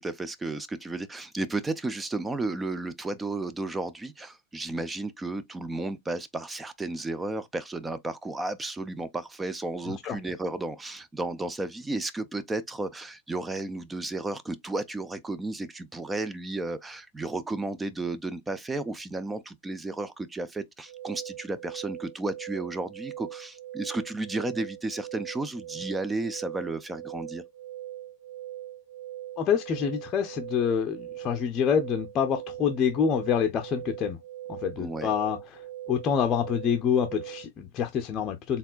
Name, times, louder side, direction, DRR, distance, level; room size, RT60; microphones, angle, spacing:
voice 1, 0.0-27.4 34.8-35.1, right 2 dB, 10° right, 0.4 m, -33 dB
sound 1, 20.9-37.5, right 13 dB, 60° right, 0.8 m, -41 dB
voice 2, 29.4-34.2 34.5-35.4 35.9-38.6, left 7 dB, 30° left, 0.6 m, -26 dB
4.2 x 3.6 x 2.3 m
figure-of-eight pair, 90°, 0 cm